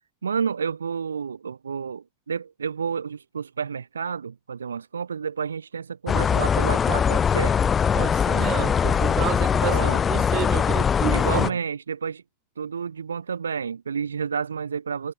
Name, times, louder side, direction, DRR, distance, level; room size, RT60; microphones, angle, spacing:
voice 1, 0.2-7.6 9.6-10.0 11.1-12.2 12.6-15.1, right 6 dB, 70° right, 1.0 m, -30 dB
sound 1, 6.1-11.5, left 7 dB, 20° left, 0.4 m, -21 dB
voice 2, 7.9-9.8 10.1-11.5, right 14 dB, 35° right, 1.4 m, -30 dB
figure-of-eight pair, 90°, 0 cm